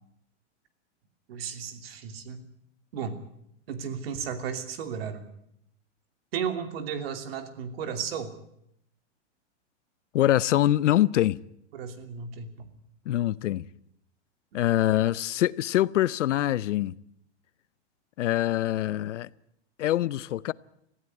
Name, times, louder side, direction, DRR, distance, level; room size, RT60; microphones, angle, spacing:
voice 1, 1.3-2.4 2.9-3.2 3.7-5.3 6.3-8.3 11.7-12.7, right 7 dB, 55° right, 3.0 m, -34 dB
voice 2, 10.1-11.4 13.1-13.7 14.5-16.9 18.2-19.3 19.8-20.5, left 13 dB, 85° left, 0.8 m, -24 dB
19.0 x 15.5 x 9.6 m
supercardioid pair, 170°, 35 cm